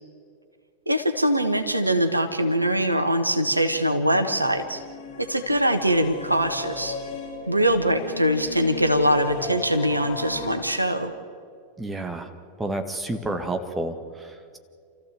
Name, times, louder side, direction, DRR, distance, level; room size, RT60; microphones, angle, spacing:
voice 1, 0.9-4.8 5.2-7.0 7.5-11.1, right 1 dB, 85° right, 8 dB, 1.4 m, -22 dB
sound 1, 3.3-10.6, left 6 dB, 55° left, 6.0 m, -36 dB
voice 2, 11.8-12.3 12.6-14.6, right 2 dB, 10° right, 6 dB, 1.8 m, -30 dB
29.0 x 14.5 x 7.9 m, 2.2 s
figure-of-eight pair, 90°, 0 cm